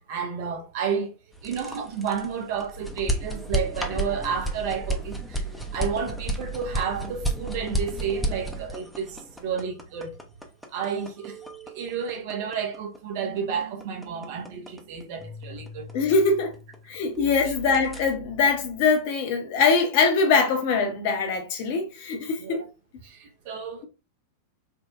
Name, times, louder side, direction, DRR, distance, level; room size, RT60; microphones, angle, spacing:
voice 1, 0.1-1.1 1.4-5.4 5.7-10.2 10.7-11.4 11.7-15.9 17.1-17.5 22.4-22.7 23.0-23.9, right 6 dB, 50° right, 0.6 m, -31 dB
sound 1, 1.3-17.2 17.5-18.1, right 1 dB, ahead, 0.5 m, -32 dB
sound 2, 11.2-19.0, right 4 dB, 80° left, 0.9 m, -45 dB
voice 2, 15.9-16.5 16.9-22.6, left 4 dB, 50° left, 0.7 m, -23 dB
3.5 x 2.1 x 2.4 m
figure-of-eight pair, 90°, 0 cm